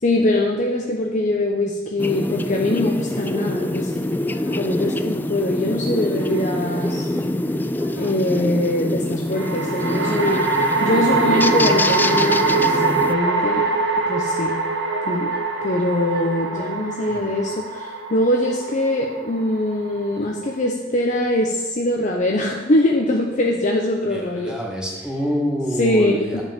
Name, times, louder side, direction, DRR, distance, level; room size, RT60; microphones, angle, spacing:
voice 1, 0.0-7.1 8.0-13.7 14.1-14.6 15.1-15.3 15.6-24.6 25.8-26.4, left 1 dB, 40° left, 0 dB, 0.9 m, -22 dB
sound 1, 2.0-13.1, left 1 dB, 10° left, 0.3 m, -25 dB
sound 2, 2.2-5.1 5.7-8.6 9.9-11.5 12.0-12.4 12.8-13.3 13.6-14.1 14.5-15.0 15.3-15.8 16.1-16.7, right 1 dB, 20° right, 2.6 m, -38 dB
sound 3, 6.2-6.9 9.3-20.7, right 3 dB, 85° right, 1.2 m, -23 dB
voice 2, 24.1-26.4, equal, 5° right, -3 dB, 2.3 m, -27 dB
10.5 x 5.4 x 7.3 m, 1.2 s
head